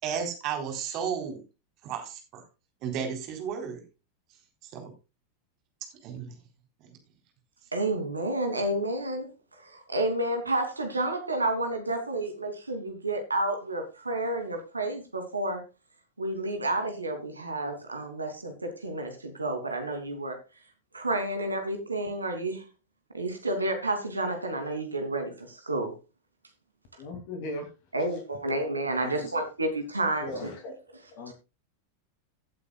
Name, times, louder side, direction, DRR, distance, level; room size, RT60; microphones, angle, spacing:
voice 1, 0.0-1.4 1.8-2.4 2.8-3.8 4.6-4.9 6.0-6.3, right 7 dB, 40° right, 4.1 m, -33 dB
voice 2, 7.7-9.3 9.5-15.6 16.2-20.4 20.9-22.6 23.1-26.0 27.9-30.5 31.3-31.4, right 1 dB, 80° right, 2.9 m, -30 dB
voice 3, 27.0-27.7 29.0-29.3 30.2-30.8 31.1-31.3, left 2 dB, 45° left, 2.7 m, -38 dB
17.5 x 8.4 x 2.4 m
figure-of-eight pair, 90°, 0 cm